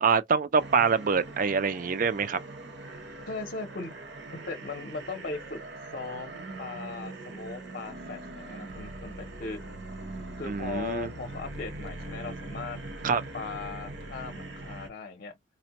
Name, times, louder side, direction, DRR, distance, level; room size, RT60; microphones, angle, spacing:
voice 1, 0.0-2.4 10.5-11.1 13.0-13.2, right 5 dB, 45° right, 0.4 m, -25 dB
sound 1, 0.5-14.9, right 2 dB, 60° right, 0.9 m, -42 dB
voice 2, 3.3-4.0 4.3-5.6 5.9-9.6 10.4-12.8 13.3-15.4, left 4 dB, 45° left, 0.6 m, -38 dB
4.1 x 2.1 x 2.8 m
head